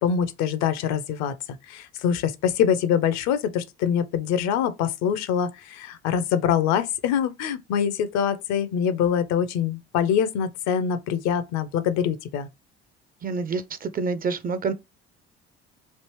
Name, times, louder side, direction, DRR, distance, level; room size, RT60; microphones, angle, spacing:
voice 1, 0.0-1.3 1.7-12.5, left 8 dB, 60° left, 0.6 m, -24 dB
voice 2, 13.2-14.7, right 4 dB, 30° right, 0.5 m, -27 dB
3.3 x 2.5 x 3.0 m
hypercardioid pair, 55°, 31 cm